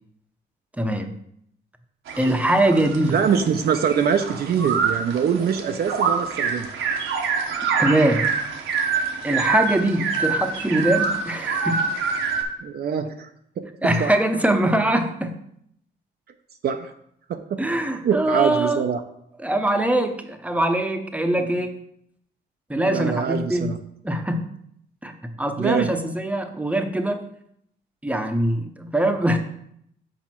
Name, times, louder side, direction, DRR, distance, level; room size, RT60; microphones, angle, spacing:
voice 1, 0.8-1.1 2.2-3.1 7.8-8.3 9.2-11.9 13.8-15.4 17.6-18.8 19.4-21.7 22.7-23.7 24.0-24.5 25.0-27.3 28.0-29.4, right 1 dB, 5° right, 6 dB, 0.8 m, -22 dB
sound 1, 2.1-12.4, right 5 dB, 80° right, 1.0 m, -26 dB
voice 2, 3.1-6.7 12.6-13.3 14.0-14.1 16.6-16.9 17.5-17.6 18.0-19.0 22.8-23.8 25.6-25.9, right 7 dB, 55° right, 5 dB, 0.6 m, -23 dB
6.2 x 5.0 x 4.4 m, 0.71 s
cardioid pair, 90°, 20 cm